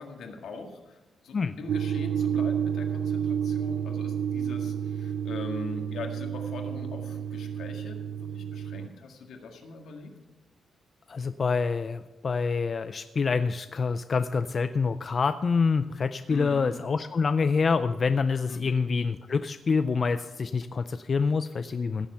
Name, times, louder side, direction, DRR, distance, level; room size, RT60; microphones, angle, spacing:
voice 1, 0.0-10.1 16.3-16.7 18.5-18.8, left 4 dB, 75° left, 3 dB, 1.8 m, -41 dB
sound 1, 1.7-8.9, right 8 dB, 70° right, 0.4 m, -30 dB
voice 2, 11.1-22.1, left 5 dB, 35° left, 10 dB, 0.4 m, -26 dB
16.0 x 7.3 x 5.6 m, 1.1 s
wide cardioid pair, 160°, 0 cm